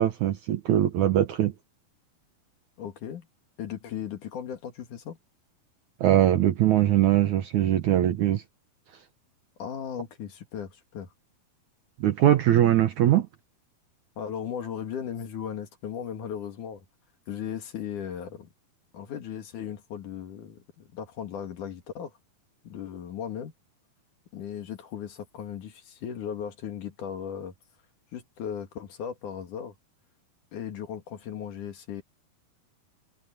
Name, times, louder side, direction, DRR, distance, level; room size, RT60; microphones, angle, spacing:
voice 1, 0.0-1.5 6.0-8.4 12.0-13.3, right 12 dB, 65° right, 2.1 m, -21 dB
voice 2, 2.8-3.3 3.6-5.2 9.6-11.1 14.2-16.8 17.3-18.5 18.9-22.1 22.6-23.5 24.3-27.5 28.1-29.7 30.5-32.0, left 8 dB, 60° left, 3.2 m, -37 dB
omnidirectional pair, 4.3 m